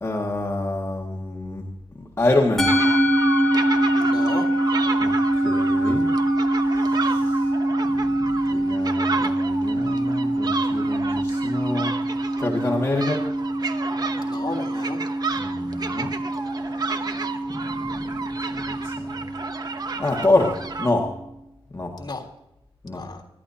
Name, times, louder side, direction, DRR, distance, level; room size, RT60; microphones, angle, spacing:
voice 1, 0.0-1.7 1.9-2.8 5.0-6.1 6.8-7.4 7.9-11.9 12.4-13.3 15.4-16.1 17.5-18.2 18.5-19.1 20.0-21.1 21.7-21.9 22.8-23.0, left 2 dB, 25° left, -2 dB, 1.9 m, -27 dB
Musical instrument, 2.6-21.1, right 1 dB, 5° left, 2.2 m, -24 dB
sound 1, 2.7-20.9, right 4 dB, 40° right, 1.0 m, -32 dB
voice 2, 4.0-4.5 14.1-15.0 22.0-22.2 22.9-23.2, left 3 dB, 45° left, -1 dB, 3.5 m, -33 dB
26.5 x 12.5 x 2.8 m, 0.87 s
wide cardioid pair, 140°, 10 cm